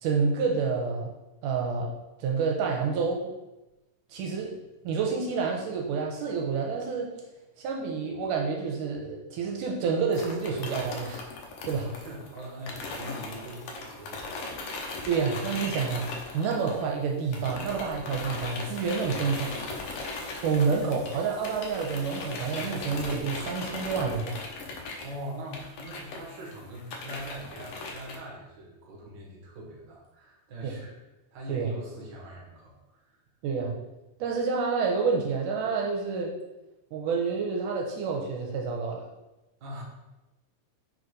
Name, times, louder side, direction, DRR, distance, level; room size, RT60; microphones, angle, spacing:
voice 1, 0.0-1.1 1.4-1.9 2.2-3.3 4.1-4.5 4.8-7.1 7.6-11.2 11.6-11.9 15.1-16.1 16.3-19.6 20.4-24.4 30.6-30.7 31.5-31.7 33.4-33.8 34.2-36.3 36.9-39.0, right 5 dB, 80° right, 0 dB, 2.2 m, -28 dB
sound 1, 10.1-17.0 17.3-28.2, left 3 dB, 75° left, 1.4 m, -38 dB
voice 2, 11.8-14.8 25.0-30.9 31.3-33.2 39.6-39.8, equal, 45° right, -3 dB, 1.5 m, -42 dB
Water tap faucet / Liquid, 17.5-23.2, left 1 dB, 50° left, 2.7 m, -51 dB
4.9 x 3.9 x 4.9 m, 1.0 s
omnidirectional pair, 3.8 m